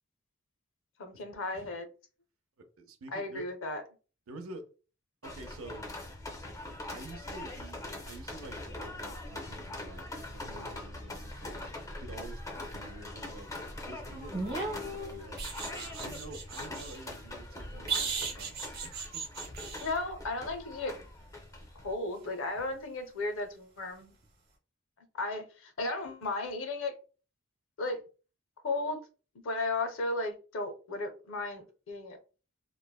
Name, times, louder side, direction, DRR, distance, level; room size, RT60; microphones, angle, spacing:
voice 1, 1.0-1.9 3.1-3.8 19.8-21.0 21.8-24.1 25.2-27.0 27.8-28.0 28.6-29.0 29.4-32.2, left 2 dB, 65° left, 0.6 m, -35 dB
voice 2, 2.6-3.5 4.3-4.7 5.2-5.9 6.9-11.7 12.0-13.5 13.8-19.3, right 2 dB, 70° right, 0.5 m, -48 dB
sound 1, 5.2-21.9, left 2 dB, 15° left, 0.4 m, -42 dB
sound 2, 14.3-17.0 17.9-19.9 22.6-22.7, right 4 dB, 45° right, 0.9 m, -36 dB
3.1 x 2.0 x 2.2 m
head